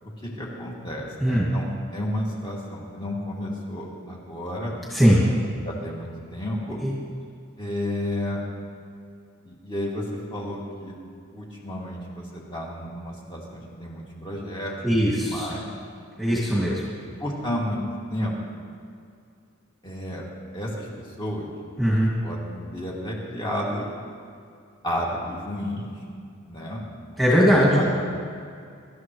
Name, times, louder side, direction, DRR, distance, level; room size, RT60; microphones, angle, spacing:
voice 1, 0.0-4.7 5.4-6.8 7.6-8.4 9.4-11.0 11.3-14.8 15.2-15.7 17.2-17.8 18.1-18.3 19.8-20.2 20.5-21.5 21.8-23.9 24.8-26.0 26.5-26.8 27.5-28.0, left 1 dB, 20° left, -4 dB, 2.4 m, -32 dB
voice 2, 4.9-5.3 6.8-6.9 14.8-15.5 16.2-16.9 21.8-22.2 27.2-27.9, equal, ahead, -7 dB, 2.2 m, -20 dB
24.0 x 12.5 x 3.2 m, 2.3 s
head